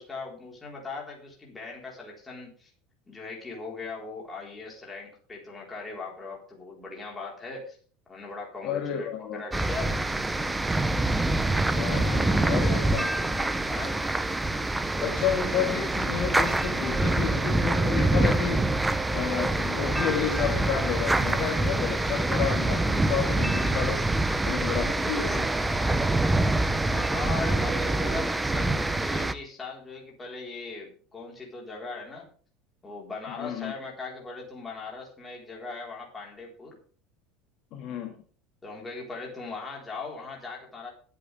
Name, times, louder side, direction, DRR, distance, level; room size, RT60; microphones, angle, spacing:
voice 1, 0.0-2.7 3.1-7.8 8.1-9.9 11.8-12.0 12.4-12.8 13.3-13.4 13.7-14.0 26.9-32.3 32.8-36.8 38.6-40.9, left 4 dB, 10° left, -2 dB, 4.3 m, -39 dB
voice 2, 8.6-9.4 11.7-13.1 15.0-18.7 19.1-24.1 24.5-25.5 33.4-33.7 37.7-38.1, left 8 dB, 45° left, 2 dB, 2.0 m, -31 dB
sound 1, 9.5-29.3, right 2 dB, 5° right, 0.6 m, -25 dB
20.5 x 8.6 x 3.5 m, 0.43 s
cardioid pair, 175°, 0 cm